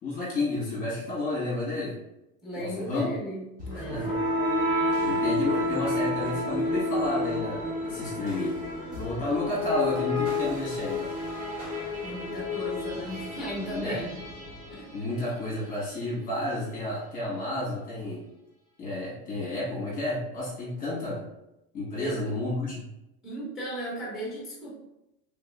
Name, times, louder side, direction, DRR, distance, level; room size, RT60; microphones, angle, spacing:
voice 1, 0.0-2.0 2.6-3.1 3.7-4.2 5.0-8.6 8.9-11.1 13.7-14.0 14.9-18.2 18.8-21.2 21.7-22.9, left 2 dB, 25° left, -7 dB, 1.3 m, -31 dB
voice 2, 2.4-4.2 12.0-14.2 14.7-14.9 22.0-22.2 23.2-24.7, right 1 dB, ahead, -7 dB, 1.3 m, -36 dB
sound 1, 3.6-15.5, left 2 dB, 25° right, 1.4 m, -30 dB
3.5 x 3.4 x 2.2 m, 0.91 s
supercardioid pair, 165°, 32 cm